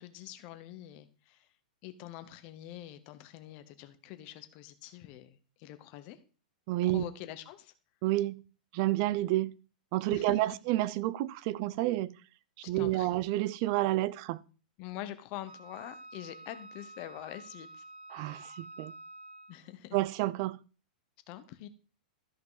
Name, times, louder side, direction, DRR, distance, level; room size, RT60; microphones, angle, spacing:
voice 1, 0.0-1.5 1.8-6.2 6.8-7.7 10.1-10.4 12.6-13.2 14.8-17.8 19.5-20.0 21.3-21.7, left 13 dB, 30° left, 0.8 m, -45 dB
voice 2, 6.7-7.0 8.0-8.4 8.7-9.5 9.9-12.1 12.6-14.4 18.1-18.9 19.9-20.6, right 16 dB, 30° right, 0.4 m, -30 dB
Wind instrument woodwind instrument, 15.5-19.7, right 2 dB, 80° right, 1.8 m, -49 dB
13.0 x 5.5 x 4.0 m
supercardioid pair, 170°, 5 cm